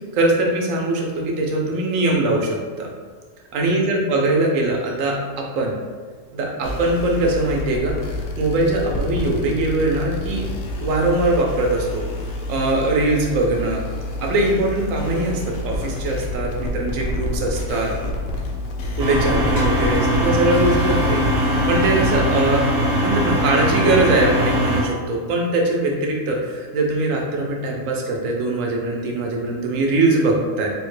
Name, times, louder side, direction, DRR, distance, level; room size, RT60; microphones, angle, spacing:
voice 1, 0.1-2.9 3.5-5.8 6.3-7.9 8.4-10.4 10.8-12.0 12.5-13.8 14.2-17.9 19.0-22.6 23.0-30.7, right 2 dB, 90° right, 0 dB, 1.0 m, -21 dB
sound 1, 6.6-22.2, left 1 dB, 65° left, 0.6 m, -28 dB
sound 2, 19.0-24.8, equal, 45° right, 0.6 m, -20 dB
3.5 x 2.1 x 3.1 m, 1.5 s
omnidirectional pair, 1.3 m